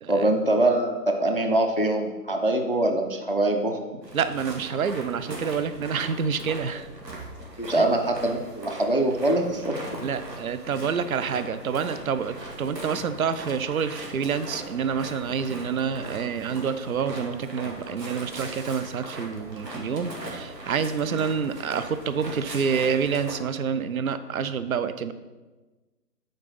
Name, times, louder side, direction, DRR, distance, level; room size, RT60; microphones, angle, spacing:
voice 1, 0.1-3.8 7.1-7.2 7.6-9.7 21.0-21.2, right 1 dB, 35° left, 4 dB, 0.4 m, -23 dB
sound 1, 4.0-23.3, right 1 dB, 80° right, 2.2 m, -40 dB
voice 2, 4.1-6.9 7.8-7.9 10.0-25.1, right 6 dB, 60° right, 12 dB, 0.5 m, -28 dB
8.8 x 3.9 x 5.7 m, 1.2 s
figure-of-eight pair, 150°, 49 cm